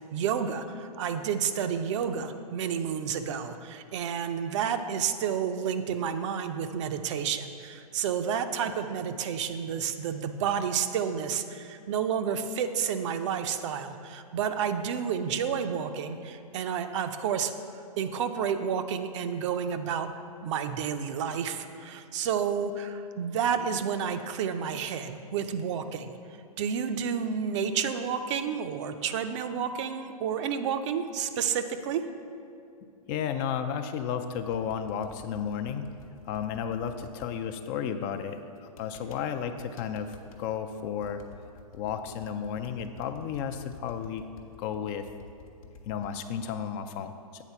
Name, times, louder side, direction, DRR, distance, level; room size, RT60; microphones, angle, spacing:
voice 1, 0.1-17.5 18.0-20.1 20.4-26.1 26.6-32.0, right 7 dB, 50° right, 8 dB, 0.5 m, -30 dB
voice 2, 33.1-35.9 36.3-41.2 41.7-44.2 44.6-45.1 45.9-47.4, left 7 dB, 35° left, 8 dB, 0.4 m, -33 dB
sound 1, 34.4-37.3 38.6-39.2 39.6-40.4 40.8-46.3, left 5 dB, 60° left, 0.9 m, -51 dB
8.2 x 4.0 x 5.6 m, 2.4 s
hypercardioid pair, 115°, 20 cm